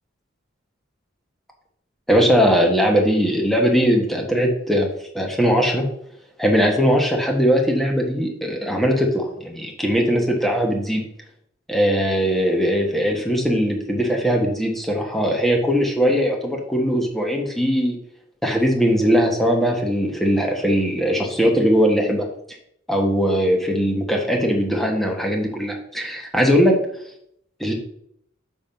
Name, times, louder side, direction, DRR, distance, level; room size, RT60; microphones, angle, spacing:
voice 1, 2.1-5.9 6.4-11.0 11.7-18.0 18.4-22.2 22.9-26.8 27.6-27.7, equal, ahead, 1 dB, 1.4 m, -20 dB
6.2 x 5.4 x 5.9 m, 0.72 s
head